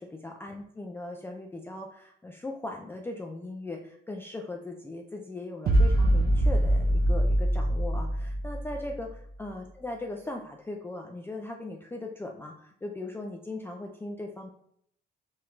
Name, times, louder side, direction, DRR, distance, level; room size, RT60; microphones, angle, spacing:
voice 1, 0.0-9.1 9.4-14.5, left 2 dB, 10° left, 1 dB, 0.3 m, -39 dB
sound 1, 5.7-9.1, right 1 dB, 50° right, 0.5 m, -24 dB
3.2 x 2.3 x 3.0 m, 0.68 s
cardioid pair, 90°, 20 cm